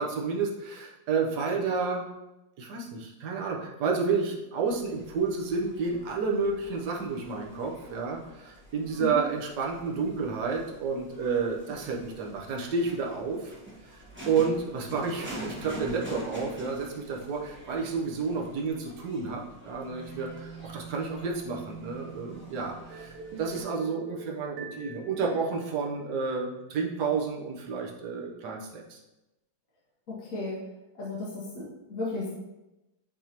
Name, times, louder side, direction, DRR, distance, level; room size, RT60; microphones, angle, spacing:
voice 1, 0.0-2.0 2.6-13.5 14.3-29.0, right 4 dB, 60° right, -1 dB, 1.3 m, -30 dB
sound 1, 4.6-23.6, equal, 5° right, 1.0 m, -46 dB
sound 2, 19.9-26.6, right 8 dB, 70° left, 2.2 m, -49 dB
sound 3, 22.9-26.2, right 2 dB, 80° right, 1.8 m, -45 dB
voice 2, 30.1-30.6 30.9-32.3, left 3 dB, 45° left, -6 dB, 1.3 m, -34 dB
9.3 x 3.5 x 2.9 m, 0.98 s
omnidirectional pair, 2.4 m